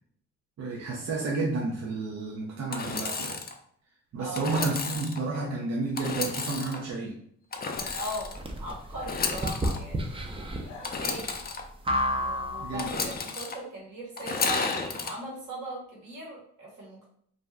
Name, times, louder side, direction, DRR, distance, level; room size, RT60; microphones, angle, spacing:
voice 1, 0.6-3.4 4.1-7.2 12.6-12.9, right 3 dB, 55° right, -2 dB, 0.6 m, -31 dB
Engine / Sawing, 2.7-3.5 4.3-5.2 6.0-6.8 7.5-8.4 9.0-9.8 10.8-11.6 12.8-13.6 14.2-15.1, left 4 dB, 30° left, 0.5 m, -32 dB
voice 2, 4.2-4.5 7.9-8.3 8.6-11.4 12.1-17.1, right 1 dB, 75° right, -4 dB, 1.3 m, -39 dB
sound 1, 7.7-8.2 8.9-9.9 10.4-11.5, left 3 dB, 85° left, 0.6 m, -49 dB
sound 2, 7.7-13.0, equal, 20° right, 0.5 m, -32 dB
2.6 x 2.2 x 3.4 m, 0.65 s
supercardioid pair, 65°, 30 cm